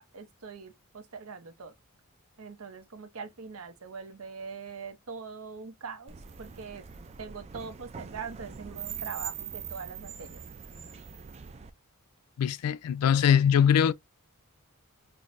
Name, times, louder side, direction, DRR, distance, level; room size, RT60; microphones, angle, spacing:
voice 1, 0.1-1.7 2.4-6.9 7.2-10.4, right 5 dB, 70° right, 0.7 m, -42 dB
sound 1, 6.1-11.7, right 7 dB, 30° right, 0.3 m, -42 dB
voice 2, 12.4-13.9, left 8 dB, 85° left, 0.3 m, -22 dB
5.8 x 2.1 x 2.5 m
head